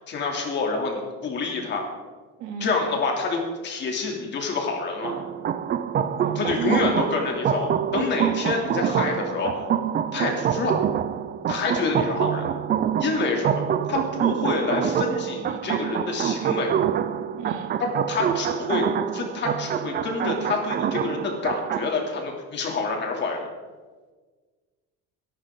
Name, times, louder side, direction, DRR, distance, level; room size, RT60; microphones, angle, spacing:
voice 1, 0.0-1.9 2.6-5.2 6.3-9.6 10.1-10.8 11.5-12.5 13.0-13.6 13.9-16.7 17.8-18.9 19.1-23.5, left 4 dB, 40° left, 1 dB, 2.8 m, -27 dB
voice 2, 2.4-2.7 6.2-6.9 17.4-17.7, right 9 dB, 85° right, 3 dB, 2.7 m, -32 dB
sound 1, 5.0-21.9, right 9 dB, 35° right, 0.6 m, -26 dB
21.5 x 11.5 x 3.8 m, 1.4 s
cardioid pair, 175°, 29 cm